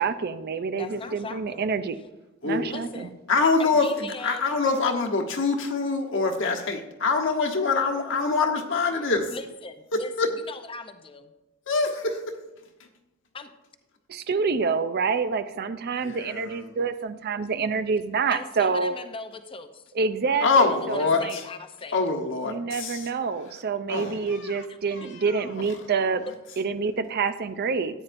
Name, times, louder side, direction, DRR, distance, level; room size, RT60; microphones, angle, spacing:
voice 1, 0.0-2.0 2.4-3.1 14.1-18.9 20.0-20.5 20.9-21.3 22.5-26.2 26.6-28.0, right 5 dB, 50° right, 11 dB, 0.5 m, -27 dB
voice 2, 0.8-1.7 1.9-2.1 2.7-3.2 3.6-4.5 4.9-5.0 9.3-11.3 13.3-13.5 17.7-17.8 18.3-19.9 20.5-22.0 24.7-25.1, left 3 dB, 25° left, 8 dB, 0.6 m, -40 dB
voice 3, 2.4-2.8 3.3-9.3 9.9-10.3 11.7-12.4 16.0-16.7 20.4-21.4 21.9-23.1 23.9-25.7, left 4 dB, 65° left, 3 dB, 1.1 m, -25 dB
13.5 x 9.0 x 2.6 m, 1.0 s
head